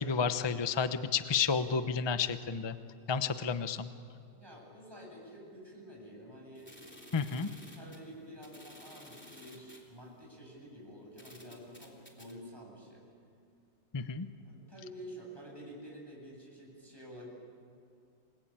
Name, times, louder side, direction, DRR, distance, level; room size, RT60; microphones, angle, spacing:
voice 1, 0.0-2.8 3.1-3.9 7.1-7.5 13.9-14.3, left 6 dB, 25° left, 10 dB, 0.6 m, -31 dB
voice 2, 4.3-6.8 7.7-13.0 14.4-17.3, equal, 15° right, -2 dB, 8.1 m, -49 dB
sound 1, 6.6-9.9 10.6-10.7 11.2-12.3, equal, 5° left, 3.2 m, -54 dB
29.0 x 21.0 x 9.0 m, 2.4 s
omnidirectional pair, 1.7 m